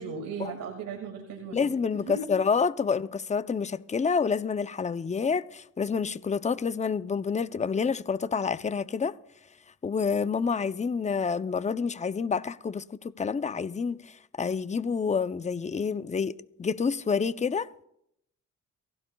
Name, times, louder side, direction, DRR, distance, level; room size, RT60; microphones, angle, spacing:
voice 1, 0.0-1.7 2.1-2.3, right 5 dB, 75° right, 2.3 m, -37 dB
voice 2, 1.5-9.2 9.8-17.8, left 5 dB, 20° left, 0.6 m, -28 dB
23.5 x 16.0 x 2.3 m
cardioid pair, 70°, 32 cm